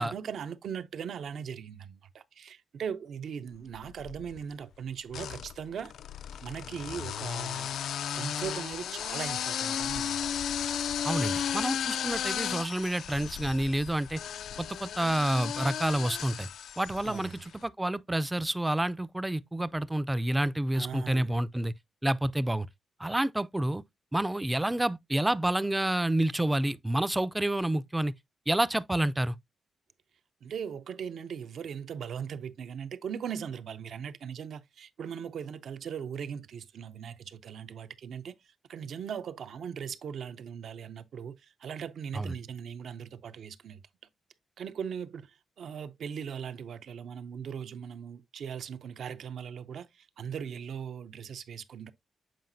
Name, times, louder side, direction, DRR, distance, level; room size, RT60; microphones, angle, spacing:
voice 1, 0.0-5.9 6.4-7.8 8.1-10.5 17.0-17.4 20.7-21.3 30.4-38.3 38.7-43.8 44.6-51.9, right 7 dB, 70° right, 0.6 m, -39 dB
sound 1, 3.7-4.4 5.1-17.4, left 9 dB, 90° left, 0.3 m, -34 dB
voice 2, 11.0-14.2 14.6-16.5 16.8-21.7 22.0-22.7 23.0-23.8 24.1-28.1 28.5-29.4 42.1-42.3, right 1 dB, 10° right, 0.3 m, -29 dB
7.6 x 4.8 x 2.6 m
wide cardioid pair, 130°, 0 cm